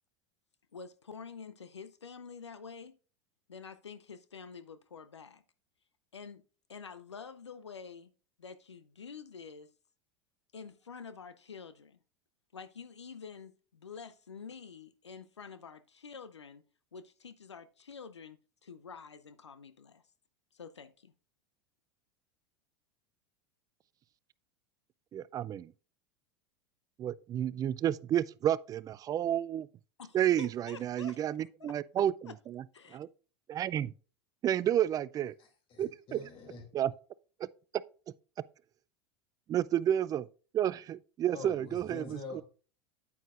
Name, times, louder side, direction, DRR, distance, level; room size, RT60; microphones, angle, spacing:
voice 1, 0.7-3.0 3.5-5.4 6.1-6.4 6.7-8.1 8.4-9.7 10.5-12.0 12.5-16.6 16.9-20.0 20.5-21.1 30.0-31.8 32.2-32.4 32.7-33.0, left 5 dB, 85° left, 0.6 m, -48 dB
voice 2, 25.1-25.7 27.0-29.7 30.1-32.1 32.5-32.6 32.9-33.1 33.5-33.9 34.4-35.4 35.8-36.2 36.7-36.9 37.4-37.5 39.5-40.3 40.5-42.0 42.3-42.4, right 11 dB, 25° right, 0.3 m, -30 dB
voice 3, 35.4-36.6 41.3-42.4, left 3 dB, 40° left, 2.5 m, -46 dB
9.0 x 8.4 x 2.5 m
figure-of-eight pair, 85°, 14 cm